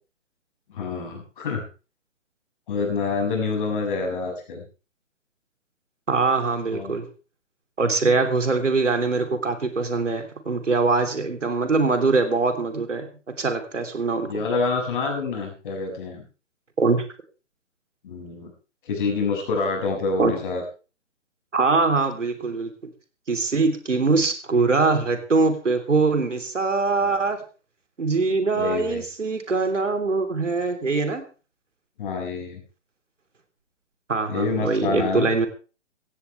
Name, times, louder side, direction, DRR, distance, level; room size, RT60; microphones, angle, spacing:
voice 1, 0.7-1.7 2.7-4.6 6.7-7.0 14.2-16.2 18.0-18.5 18.9-20.6 27.0-27.1 28.5-29.0 32.0-32.6 34.3-35.3, left 4 dB, 40° left, 2 dB, 6.9 m, -27 dB
voice 2, 6.1-7.1 7.8-13.1 13.4-14.4 16.8-17.1 20.2-20.3 21.5-22.7 23.3-27.4 28.0-31.2 34.1-35.5, right 3 dB, 70° right, 7 dB, 3.5 m, -22 dB
16.5 x 16.0 x 3.5 m, 0.34 s
figure-of-eight pair, 135°, 38 cm